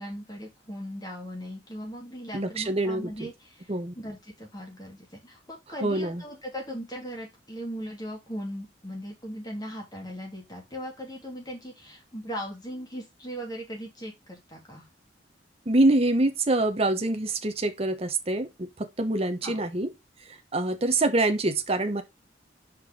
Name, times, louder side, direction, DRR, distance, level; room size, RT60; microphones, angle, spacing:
voice 1, 0.0-14.9 19.4-19.6, equal, 20° left, 2.6 m, -38 dB
voice 2, 2.3-3.3 3.7-3.9 5.8-6.2 15.7-19.9 20.3-22.0, right 2 dB, 35° right, 1.0 m, -25 dB
5.2 x 4.4 x 5.1 m
head